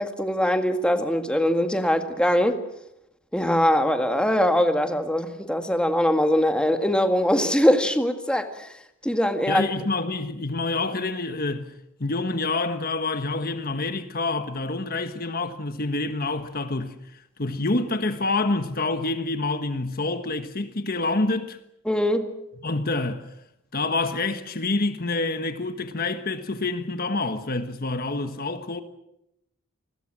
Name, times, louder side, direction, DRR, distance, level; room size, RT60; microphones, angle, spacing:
voice 1, 0.0-2.6 3.3-8.7 9.0-9.7 21.9-22.3, equal, 5° left, 1.8 m, -22 dB
voice 2, 9.5-11.7 12.0-21.6 22.6-23.3 23.7-28.8, left 2 dB, 45° left, 1.3 m, -27 dB
28.5 x 21.0 x 7.5 m
head